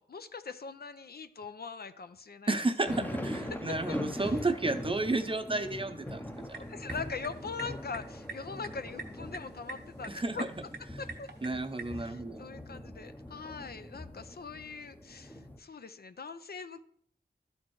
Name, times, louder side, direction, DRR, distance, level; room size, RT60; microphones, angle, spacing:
voice 1, 0.0-2.5 3.9-4.3 6.7-10.5 11.0-11.3 12.0-16.8, left 5 dB, 60° left, 10 dB, 0.5 m, -42 dB
voice 2, 2.5-6.2 6.5-6.6 10.1-10.4 11.4-12.5, right 2 dB, 30° right, 8 dB, 0.6 m, -32 dB
sound 1, 2.8-15.6, left 1 dB, 10° left, 0.7 m, -42 dB
sound 2, 6.3-12.0, right 4 dB, 65° right, 0.9 m, -47 dB
12.0 x 4.3 x 3.1 m, 0.63 s
wide cardioid pair, 55°, 18 cm